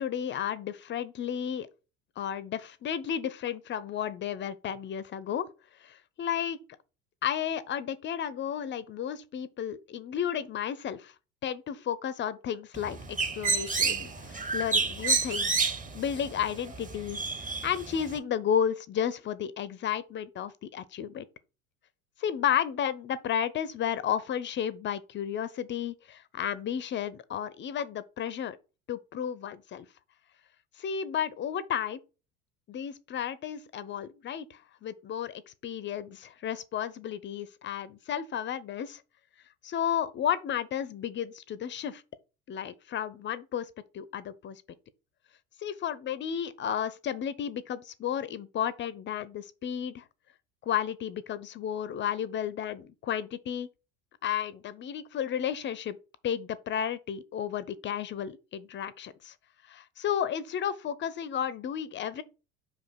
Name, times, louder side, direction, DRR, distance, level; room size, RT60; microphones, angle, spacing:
voice 1, 0.0-1.7 2.2-5.5 5.8-6.6 7.2-11.1 11.4-17.2 17.6-21.3 22.2-28.6 28.9-29.9 30.8-32.0 32.7-39.0 39.6-42.0 42.5-44.6 45.6-50.0 50.6-53.7 54.2-56.0 56.2-59.3 59.6-62.2, left 9 dB, 25° left, 0.5 m, -33 dB
Bird, 12.7-18.2, right 4 dB, 15° right, 1.0 m, -30 dB
5.2 x 4.9 x 4.2 m
figure-of-eight pair, 70°, 45 cm